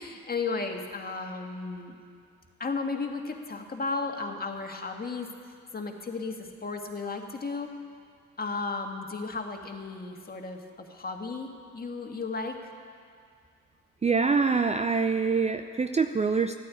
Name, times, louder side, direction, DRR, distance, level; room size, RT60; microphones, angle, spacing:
voice 1, 0.0-2.0 2.6-5.3 5.7-7.7 8.4-12.7, left 4 dB, 30° left, 3 dB, 2.0 m, -34 dB
voice 2, 14.0-16.5, right 5 dB, 20° right, 9 dB, 0.5 m, -25 dB
14.0 x 9.4 x 8.5 m, 2.2 s
supercardioid pair, 65°, 31 cm